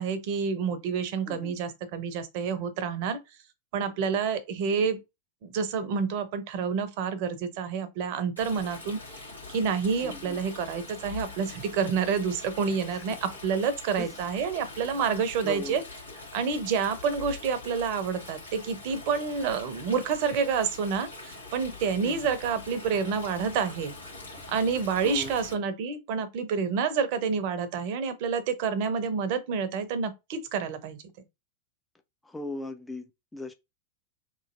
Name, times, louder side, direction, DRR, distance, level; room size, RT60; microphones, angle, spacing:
voice 1, 0.0-3.2 3.7-5.0 5.4-15.8 16.3-23.9 24.5-31.0, right 6 dB, 45° right, 0.6 m, -28 dB
voice 2, 1.3-1.6 10.0-10.4 14.0-14.2 15.4-15.8 22.0-22.4 24.3-24.5 25.0-25.3 32.2-33.5, left 2 dB, 5° left, 0.4 m, -38 dB
Stream, 8.4-25.5, left 3 dB, 85° left, 1.4 m, -43 dB
3.0 x 2.5 x 2.6 m
figure-of-eight pair, 90°, 0 cm